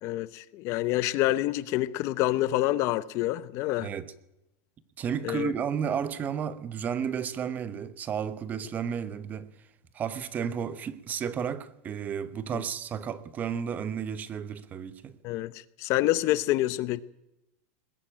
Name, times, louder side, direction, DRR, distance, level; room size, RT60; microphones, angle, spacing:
voice 1, 0.0-3.9 5.2-5.5 12.5-12.6 15.2-17.0, left 16 dB, 40° left, 0.8 m, -27 dB
voice 2, 3.8-4.1 5.0-9.5 9.9-15.1, right 7 dB, 20° right, 1.0 m, -32 dB
21.0 x 16.5 x 8.9 m
supercardioid pair, 165°, 8 cm